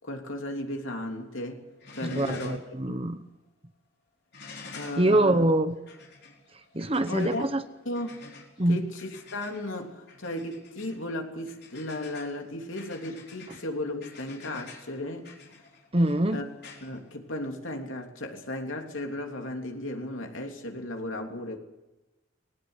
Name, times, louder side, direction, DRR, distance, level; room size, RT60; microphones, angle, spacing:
voice 1, 0.0-1.7 1.9-2.6 2.8-3.0 4.7-5.5 7.1-7.5 7.8-8.3 8.7-15.3 16.3-16.5 16.8-21.6, left 1 dB, 70° left, 3 dB, 3.2 m, -35 dB
sound 1, 1.2-1.5 1.8-2.7 3.1-3.2 4.3-17.7 19.1-19.2, left 3 dB, 50° left, 4.4 m, -49 dB
voice 2, 2.0-3.2 5.0-5.7 6.7-7.6 8.6-8.8 15.9-16.4, right 1 dB, 25° right, 10 dB, 1.0 m, -24 dB
20.5 x 18.5 x 8.2 m, 1.0 s
head